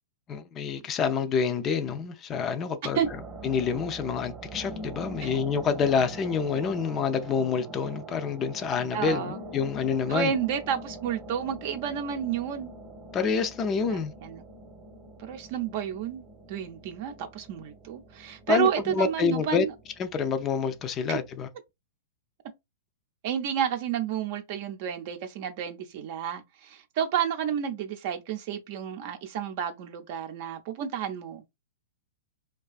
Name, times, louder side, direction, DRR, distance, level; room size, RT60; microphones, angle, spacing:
voice 1, 0.3-3.0 3.4-10.3 13.1-14.1 18.5-19.7 20.0-21.5, left 6 dB, 30° left, 0.4 m, -27 dB
sound 1, 3.0-21.3, right 1 dB, 25° right, 0.9 m, -44 dB
voice 2, 8.9-9.4 10.1-12.7 13.9-14.4 15.2-19.7 21.1-21.2 23.2-31.4, right 8 dB, 50° right, 0.6 m, -31 dB
2.5 x 2.3 x 2.3 m
hypercardioid pair, 115°, 0 cm